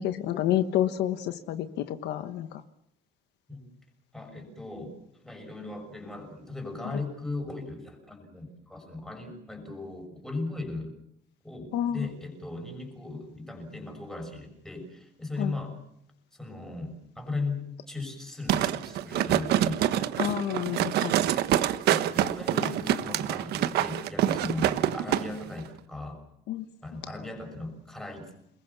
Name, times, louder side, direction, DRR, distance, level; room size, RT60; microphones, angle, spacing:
voice 1, 0.0-2.6 11.7-12.1 15.4-15.5 20.2-21.1 26.5-26.6, left 11 dB, 60° left, 9 dB, 1.3 m, -29 dB
voice 2, 4.1-10.9 11.4-15.8 16.3-20.1 20.6-20.9 21.9-26.2 26.8-28.3, left 2 dB, 5° left, 3 dB, 6.4 m, -37 dB
sound 1, 18.5-25.2 25.6-25.7, right 12 dB, 55° right, 1.4 m, -26 dB
29.0 x 21.0 x 7.1 m, 0.77 s
cardioid pair, 180°, 20 cm